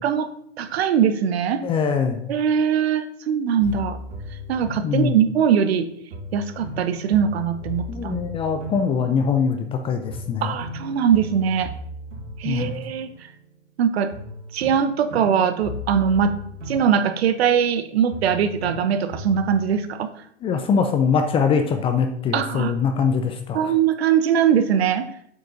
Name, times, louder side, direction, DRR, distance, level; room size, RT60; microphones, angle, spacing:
voice 1, 0.6-1.6 2.3-4.0 4.5-5.9 6.3-8.2 10.4-11.7 12.4-13.1 13.8-14.1 14.5-16.3 16.7-20.1 22.3-22.7 23.5-25.1, right 8 dB, 60° right, 10 dB, 1.1 m, -21 dB
voice 2, 1.6-2.3 4.8-5.2 7.9-10.5 12.4-12.8 20.4-23.7, left 6 dB, 15° left, 6 dB, 0.5 m, -22 dB
sound 1, 3.6-5.8 6.1-9.8 10.1-13.8 14.1-17.8 18.1-19.7, left 2 dB, 80° right, 3.1 m, -37 dB
8.0 x 5.1 x 5.3 m, 0.69 s
hypercardioid pair, 120°, 36 cm